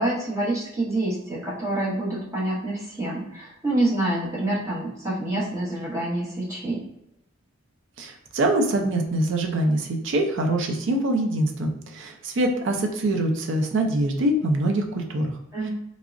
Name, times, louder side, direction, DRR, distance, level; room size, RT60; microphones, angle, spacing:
voice 1, 0.0-6.8 15.5-15.7, right 1 dB, 15° right, -7 dB, 0.8 m, -27 dB
voice 2, 8.0-15.4, right 1 dB, 60° right, 3 dB, 0.4 m, -24 dB
3.5 x 2.0 x 2.4 m, 0.82 s
head